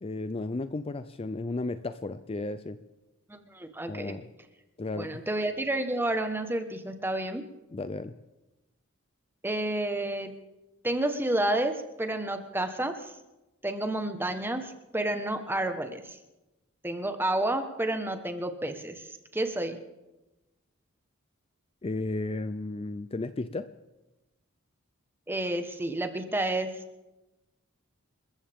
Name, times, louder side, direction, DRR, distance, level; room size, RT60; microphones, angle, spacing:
voice 1, 0.0-2.8 3.9-4.3 4.8-5.1 7.7-8.1 21.8-23.7, left 2 dB, 30° left, 12 dB, 0.5 m, -34 dB
voice 2, 3.3-4.1 5.0-7.5 9.4-10.4 10.8-13.1 13.6-16.2 16.8-19.1 19.3-19.8 25.3-26.7, right 1 dB, 10° right, 7 dB, 1.2 m, -30 dB
28.0 x 14.5 x 3.6 m, 1.0 s
head